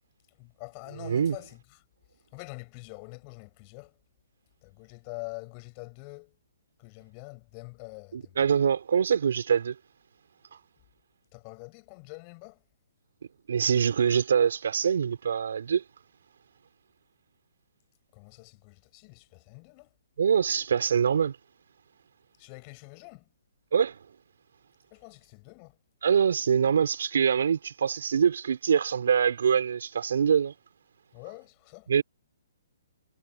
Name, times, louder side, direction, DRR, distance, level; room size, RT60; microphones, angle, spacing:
voice 1, 0.3-1.8 2.3-4.0 4.6-6.4 6.8-8.5 11.3-12.6 18.1-19.9 22.4-23.3 24.9-25.8 31.1-31.9, left 37 dB, 25° left, 7.2 m, -45 dB
voice 2, 1.0-1.4 8.1-9.8 13.5-15.8 20.2-21.4 23.7-24.0 26.0-30.5 31.9-32.0, right 7 dB, 70° right, 3.9 m, -24 dB
hypercardioid pair, 160°, 0 cm